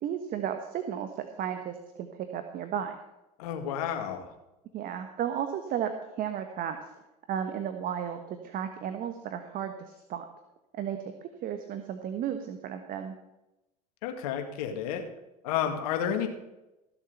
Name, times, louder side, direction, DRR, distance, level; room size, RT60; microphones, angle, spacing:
voice 1, 0.0-3.0 4.7-6.8 7.3-10.3 10.7-13.1, right 9 dB, 45° right, 7 dB, 1.3 m, -34 dB
voice 2, 3.4-4.3 14.0-15.0 15.4-16.3, left 9 dB, 75° left, 5 dB, 2.0 m, -31 dB
15.5 x 7.2 x 5.7 m, 0.95 s
hypercardioid pair, 85°, 20 cm